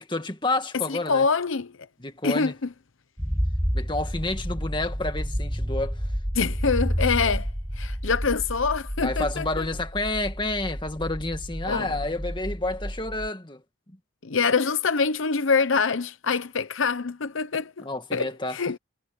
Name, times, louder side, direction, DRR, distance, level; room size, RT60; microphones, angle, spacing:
voice 1, 0.0-1.3 2.0-2.5 3.7-6.0 9.0-13.6 17.8-18.6, left 2 dB, 25° left, 2.0 m, -29 dB
voice 2, 0.9-1.7 2.2-2.7 6.3-7.5 7.8-9.6 11.7-11.9 14.2-17.9 18.1-18.8, left 5 dB, 80° left, 0.8 m, -25 dB
sound 1, 3.2-13.3, equal, 5° right, 7.6 m, -30 dB
head